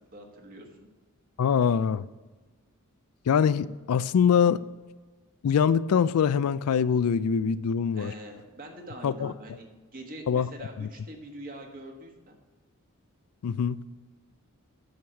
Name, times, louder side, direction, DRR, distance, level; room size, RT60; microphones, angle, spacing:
voice 1, 0.1-0.9 7.9-9.7 9.9-12.4, right 1 dB, 40° right, 1.5 m, -44 dB
voice 2, 1.4-2.1 3.3-4.6 5.4-8.1 9.0-9.3 10.3-10.5 10.8-10.9 13.4-13.8, left 7 dB, 85° left, 0.4 m, -23 dB
9.5 x 6.3 x 5.7 m
head